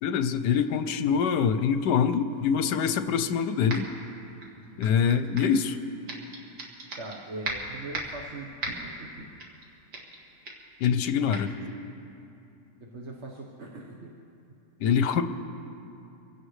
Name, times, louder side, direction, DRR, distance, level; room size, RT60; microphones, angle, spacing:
voice 1, 0.0-3.9 4.8-5.8 10.8-11.7 14.8-15.2, left 7 dB, 75° left, 10 dB, 1.3 m, -24 dB
sound 1, 3.7-4.0 4.4-5.6 6.1-7.2 7.4-8.2 8.6-9.0 9.4-9.7 9.9-10.2 10.5-10.7 11.3-11.4, right 2 dB, 70° right, 2.5 m, -36 dB
voice 2, 7.0-9.4 12.8-14.1, right 2 dB, 45° right, -2 dB, 1.3 m, -41 dB
26.0 x 16.5 x 3.2 m, 2.7 s
omnidirectional pair, 1.9 m